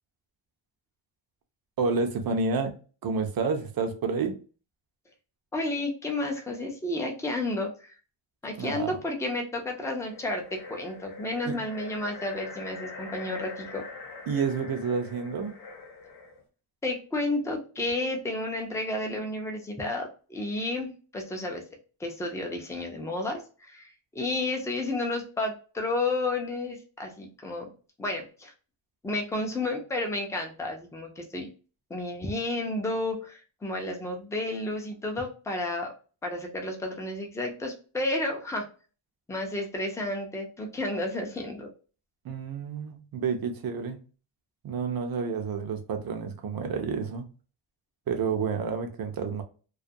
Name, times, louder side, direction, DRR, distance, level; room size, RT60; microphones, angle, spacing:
voice 1, 1.8-2.7 3.0-4.3 8.6-9.0 11.4-11.6 14.3-15.5 42.2-44.0 44.6-47.3 48.1-49.4, right 5 dB, 45° right, 0.6 m, -29 dB
voice 2, 5.5-8.0 8.4-13.9 16.8-21.6 22.0-27.7 28.0-28.5 29.0-31.5 31.9-35.9 36.2-38.7 39.3-41.7, left 2 dB, 5° left, 0.4 m, -31 dB
sound 1, 10.0-16.4, left 3 dB, 50° left, 0.8 m, -44 dB
2.3 x 2.2 x 2.6 m
cardioid pair, 135°, 50 cm